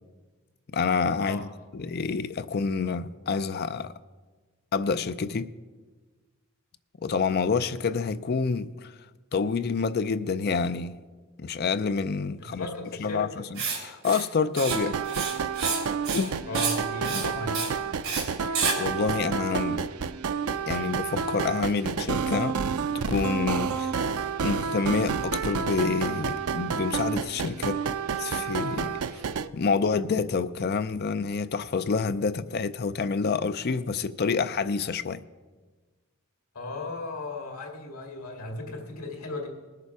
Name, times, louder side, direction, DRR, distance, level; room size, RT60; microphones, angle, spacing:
voice 1, 0.7-1.5 1.7-3.9 4.7-5.5 7.0-8.9 9.3-11.0 11.4-12.7 13.0-15.0 16.1-16.4 17.1-17.2 18.8-19.9 20.7-22.6 23.0-23.9 24.4-27.8 28.2-29.0 29.5-35.2, left 5 dB, 45° left, 0.4 m, -28 dB
voice 2, 12.4-13.5 16.5-17.7 36.5-39.5, left 2 dB, 90° left, 2.2 m, -36 dB
Writing, 13.5-13.8 14.0-14.2 14.5-14.8 15.0-15.8 16.0-16.3 16.5-16.8 17.0-17.3 17.5-17.7 18.0-18.2 18.5-18.7, right 5 dB, 65° right, 3.5 m, -29 dB
sound 1, 14.7-29.5, right 6 dB, 85° right, 0.5 m, -30 dB
19.5 x 6.8 x 4.7 m
head